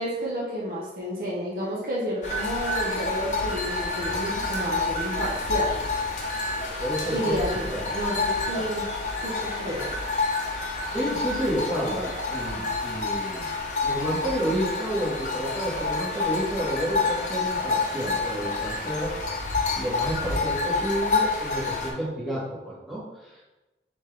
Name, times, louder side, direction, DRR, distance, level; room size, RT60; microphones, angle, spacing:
voice 1, 0.0-5.8 6.3-6.4 7.1-8.8 9.2-9.9, equal, 50° right, -5 dB, 0.9 m, -31 dB
sound 1, 2.2-21.9, left 3 dB, 45° left, 0.7 m, -28 dB
voice 2, 6.6-7.9 8.5-8.6 10.9-13.5 13.8-19.1 19.7-23.4, equal, ahead, -9 dB, 1.4 m, -30 dB
4.2 x 3.5 x 3.3 m, 1.1 s
head